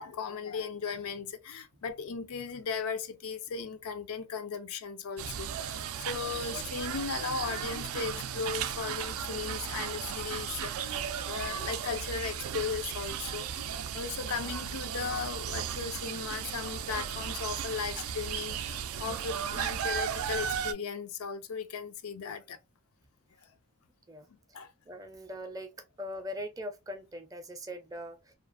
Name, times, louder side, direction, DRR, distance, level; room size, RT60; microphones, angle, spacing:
voice 1, 0.0-22.6 24.3-24.7, left 6 dB, 85° left, 0.4 m, -37 dB
sound 1, 5.2-20.7, right 8 dB, 75° right, 0.3 m, -35 dB
voice 2, 24.9-25.7 26.0-28.3, equal, 15° right, 0.4 m, -41 dB
2.4 x 2.4 x 2.4 m
head